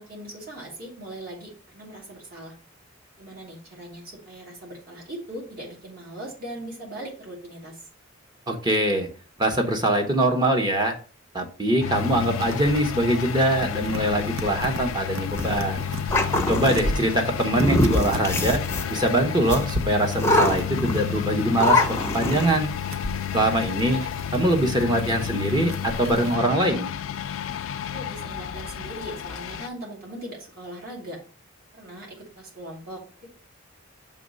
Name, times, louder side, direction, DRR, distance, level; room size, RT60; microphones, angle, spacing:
voice 1, 0.0-2.5 3.2-7.8 27.9-31.2 31.7-33.3, right 1 dB, 45° right, -2 dB, 2.4 m, -40 dB
voice 2, 8.5-9.1 9.4-11.0 11.3-15.8 16.5-18.6 18.9-22.7 23.3-24.0 24.3-26.9, right 1 dB, 20° right, 3 dB, 1.0 m, -23 dB
sound 1, 11.8-29.7, left 9 dB, 80° left, 0.4 m, -31 dB
sound 2, 11.9-26.4, right 1 dB, 80° right, 0.8 m, -37 dB
sound 3, 15.4-16.8 17.5-19.0 19.5-19.7 20.2-21.2 21.6-22.5, left 2 dB, 10° left, 0.7 m, -23 dB
6.8 x 3.2 x 5.2 m, 0.39 s
head